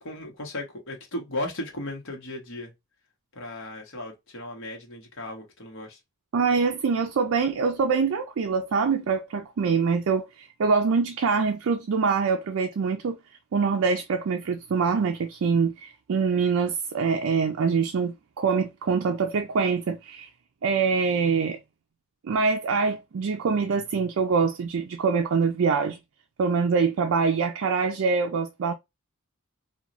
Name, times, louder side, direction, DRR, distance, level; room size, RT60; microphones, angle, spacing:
voice 1, 0.0-2.7 3.3-6.0, left 1 dB, 60° left, 1.0 m, -36 dB
voice 2, 6.3-13.2 13.5-20.3 20.6-21.6 22.2-26.0 26.4-28.7, right 5 dB, 65° right, 0.4 m, -24 dB
3.0 x 2.3 x 2.4 m
head